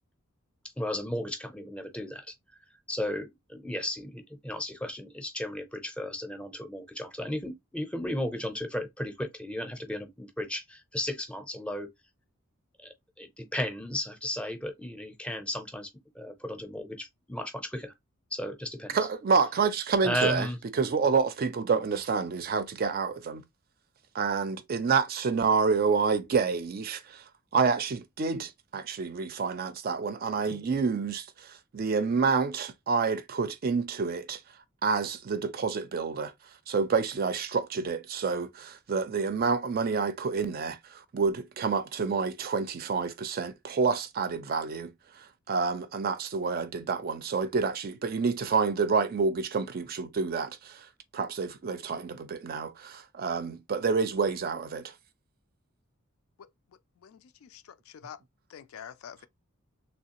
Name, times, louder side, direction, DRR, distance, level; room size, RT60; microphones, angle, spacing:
voice 1, 0.8-2.3 2.9-11.9 12.8-15.9 16.1-17.9 18.3-19.0 20.0-20.6, left 1 dB, 5° left, 0.6 m, -34 dB
voice 2, 18.9-20.5 20.7-23.4 24.1-27.2 27.5-34.4 34.8-36.3 36.7-44.9 45.2-50.9 51.1-54.9, right 5 dB, 45° right, 0.4 m, -28 dB
voice 3, 57.0-58.2 58.5-59.3, left 8 dB, 70° left, 0.3 m, -47 dB
3.2 x 3.1 x 2.8 m
head